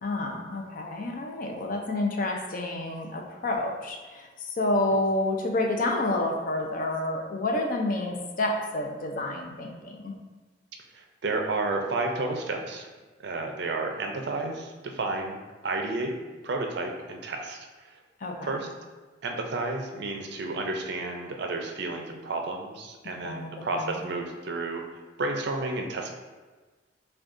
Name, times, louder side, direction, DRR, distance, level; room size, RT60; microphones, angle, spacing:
voice 1, 0.0-10.1 18.2-18.5 23.0-24.0, left 2 dB, 45° left, 1 dB, 0.5 m, -29 dB
voice 2, 10.9-12.9 13.2-15.4 15.6-16.1 16.4-17.6 18.4-18.7 19.2-24.8 25.2-26.1, right 2 dB, 60° right, 2 dB, 0.4 m, -31 dB
6.1 x 2.3 x 2.5 m, 1.3 s
head